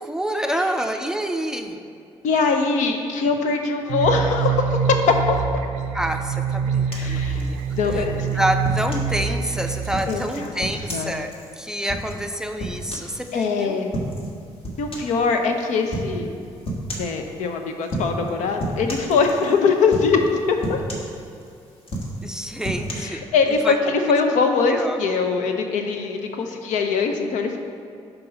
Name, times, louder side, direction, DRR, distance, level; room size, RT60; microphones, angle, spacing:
voice 1, 0.0-1.8 5.9-7.6 7.9-8.0 8.3-13.8 22.2-23.8 24.7-25.0, right 1 dB, 5° right, 5 dB, 0.5 m, -27 dB
voice 2, 2.2-5.4 7.0-7.5 7.8-8.3 10.1-10.6 10.9-11.1 13.3-13.9 14.8-16.3 17.0-20.8 22.9-27.6, left 4 dB, 70° left, 5 dB, 0.6 m, -22 dB
sound 1, 3.9-10.0, right 6 dB, 75° right, 0.4 m, -25 dB
sound 2, 6.9-9.1 9.6-13.5 13.9-14.3 14.6-15.2 15.9-16.1 16.6-17.2 17.8-18.3 18.6-19.6 19.9-20.3 20.6-21.5 21.8-22.9, right 1 dB, 45° left, 1.4 m, -31 dB
5.3 x 4.0 x 5.7 m, 2.4 s
hypercardioid pair, 50°, 13 cm